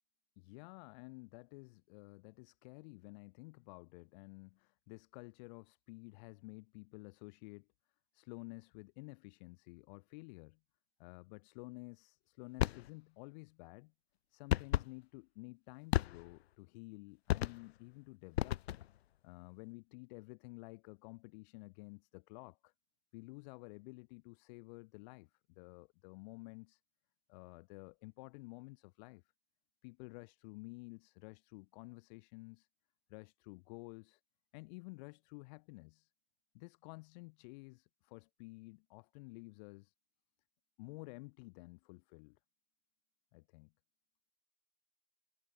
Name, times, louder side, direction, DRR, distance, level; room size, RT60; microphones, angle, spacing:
voice 1, 0.4-7.7 8.1-10.6 11.0-13.9 14.3-18.6 19.2-22.7 23.1-26.8 27.3-29.2 29.8-32.7 33.1-34.2 34.5-36.1 36.5-39.9 40.8-42.4 43.3-43.7, left 28 dB, 35° left, 7.1 m, -52 dB
sound 1, 12.6-12.9 14.5-14.9 15.9-16.4 17.3-17.8 18.3-19.0, left 13 dB, 55° left, 0.6 m, -34 dB
hypercardioid pair, 145°, 38 cm